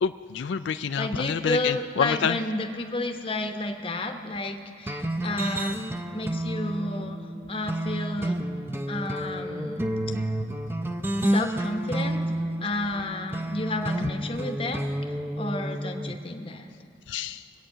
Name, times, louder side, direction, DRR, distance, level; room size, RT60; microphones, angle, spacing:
voice 1, 0.0-2.4 17.1-17.4, left 7 dB, 80° left, 11 dB, 0.4 m, -28 dB
voice 2, 1.0-8.4 8.9-9.9 11.2-12.2 12.6-16.7, left 2 dB, 30° left, 5 dB, 0.9 m, -31 dB
sound 1, 4.9-16.2, right 1 dB, 10° right, 0.5 m, -30 dB
22.5 x 8.7 x 5.6 m, 2.5 s
head